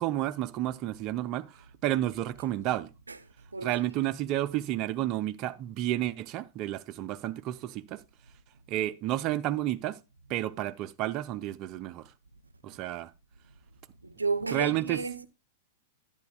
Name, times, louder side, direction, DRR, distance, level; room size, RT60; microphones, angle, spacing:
voice 1, 0.0-2.9 3.6-8.0 8.7-10.0 10.3-12.1 12.6-13.1 14.5-15.0, right 14 dB, 35° right, 0.4 m, -31 dB
voice 2, 14.0-15.3, right 4 dB, 85° right, 0.6 m, -32 dB
10.5 x 8.8 x 2.4 m
figure-of-eight pair, 100°, 0 cm